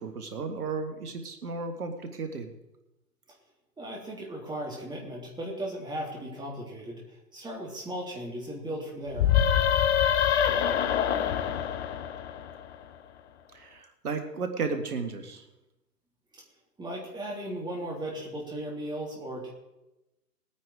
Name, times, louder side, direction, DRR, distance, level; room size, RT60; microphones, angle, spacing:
voice 1, 0.0-2.5 13.5-15.4, right 4 dB, 65° right, 6 dB, 1.9 m, -34 dB
voice 2, 3.8-9.4 16.3-16.4 16.8-19.5, right 1 dB, 10° right, -2 dB, 3.4 m, -37 dB
sound 1, 9.1-12.8, left 9 dB, 45° left, 0.8 m, -25 dB
19.5 x 9.4 x 4.8 m, 0.95 s
figure-of-eight pair, 115°, 48 cm